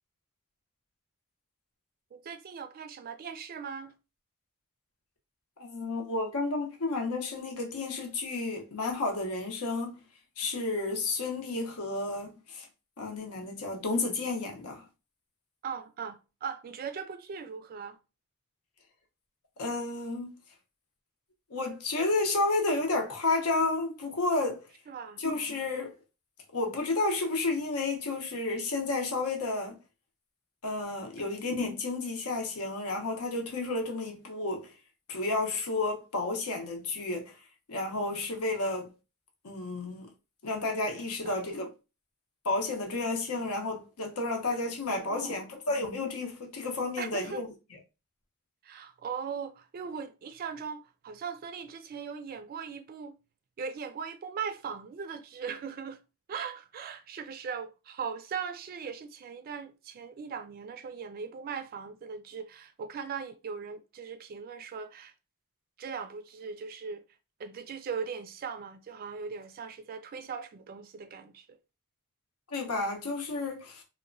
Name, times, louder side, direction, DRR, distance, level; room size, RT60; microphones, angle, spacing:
voice 1, 2.1-3.9 15.6-18.0 24.9-25.2 31.2-31.3 41.2-41.4 44.9-45.4 47.0-47.4 48.6-53.2 53.6-56.0 56.3-65.1 65.8-67.0 67.4-71.6, right 6 dB, 40° right, 0.3 m, -39 dB
voice 2, 5.6-10.0 10.4-12.7 13.0-14.9 19.6-20.3 21.5-24.7 25.2-26.0 26.5-29.7 30.6-34.7 35.1-37.4 37.7-38.9 39.4-40.1 40.4-41.7 42.4-47.5 72.5-73.8, left 2 dB, 85° left, 0.7 m, -31 dB
2.9 x 2.1 x 2.5 m
head